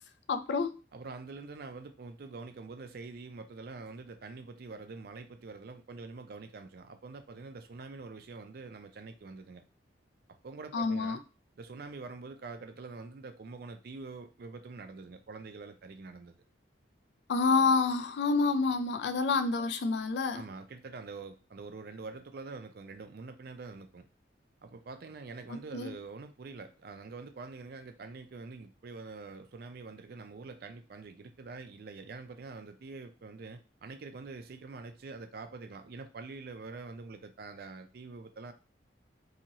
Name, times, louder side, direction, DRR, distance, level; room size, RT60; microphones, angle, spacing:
voice 1, 0.3-0.7 10.7-11.2 17.3-20.4 25.5-25.9, left 4 dB, 65° left, 0.3 m, -28 dB
voice 2, 0.9-9.6 10.4-11.2 11.6-16.3 20.3-24.1 24.6-38.5, right 3 dB, 50° right, 0.4 m, -45 dB
2.8 x 2.7 x 2.7 m
head